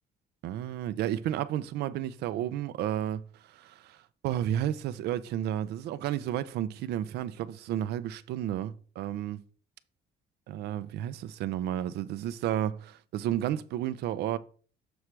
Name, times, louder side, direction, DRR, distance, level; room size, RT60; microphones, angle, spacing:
voice 1, 0.4-3.2 3.5-9.4 10.5-14.4, right 11 dB, 75° right, 0.5 m, -32 dB
7.1 x 3.3 x 6.0 m
cardioid pair, 110°, 17 cm